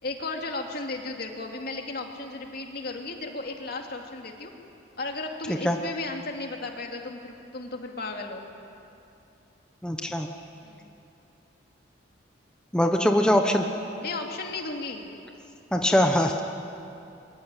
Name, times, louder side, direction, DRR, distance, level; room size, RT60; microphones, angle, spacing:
voice 1, 0.0-4.5 5.0-8.5 10.6-10.9 14.0-15.1, left 3 dB, 55° left, 2 dB, 2.7 m, -35 dB
voice 2, 9.8-10.3 12.7-13.6 15.7-16.4, equal, 5° left, 3 dB, 1.1 m, -22 dB
24.0 x 23.5 x 9.2 m, 2.7 s
head